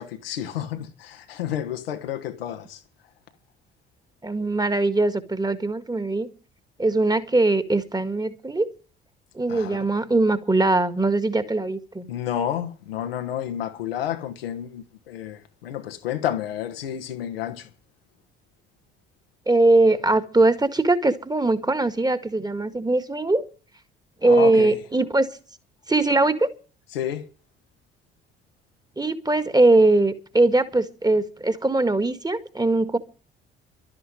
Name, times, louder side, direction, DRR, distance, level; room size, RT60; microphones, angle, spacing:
voice 1, 0.0-2.8 9.5-9.8 12.1-17.6 24.4-24.7 26.9-27.2, left 10 dB, 75° left, 1.3 m, -30 dB
voice 2, 4.2-6.3 6.8-8.7 9.4-12.1 19.5-23.4 24.2-25.3 25.9-26.5 29.0-33.0, right 2 dB, 15° right, 1.7 m, -21 dB
12.5 x 8.7 x 9.0 m
figure-of-eight pair, 50°, 30 cm